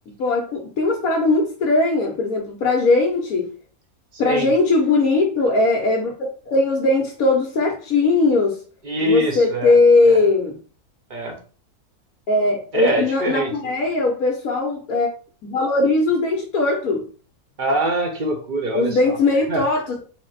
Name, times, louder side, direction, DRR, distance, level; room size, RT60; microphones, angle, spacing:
voice 1, 0.2-3.5 4.2-8.6 9.0-10.6 12.3-15.1 15.4-17.1 18.7-20.0, left 3 dB, 75° left, -1 dB, 1.3 m, -19 dB
voice 2, 8.8-9.7 10.0-10.2 11.1-11.4 12.7-13.7 17.6-19.2 19.5-19.6, right 1 dB, 40° right, 2 dB, 0.8 m, -24 dB
4.2 x 2.1 x 3.9 m, 0.39 s
omnidirectional pair, 1.6 m